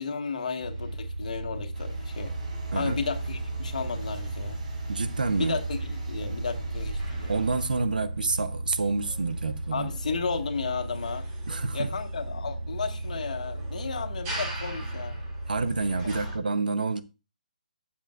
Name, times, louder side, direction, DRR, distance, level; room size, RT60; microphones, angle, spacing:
voice 1, 0.0-2.3 2.7-4.6 5.4-7.3 9.7-11.2 11.7-15.2, left 5 dB, 60° left, 1.8 m, -33 dB
sound 1, 0.6-16.4, right 1 dB, 25° right, 3.6 m, -35 dB
sound 2, 1.7-7.6, right 4 dB, 60° right, 4.6 m, -37 dB
voice 2, 4.9-5.6 7.3-9.9 11.5-11.9 15.5-17.0, right 4 dB, 80° right, 0.9 m, -28 dB
12.5 x 7.3 x 2.5 m
figure-of-eight pair, 150°, 5 cm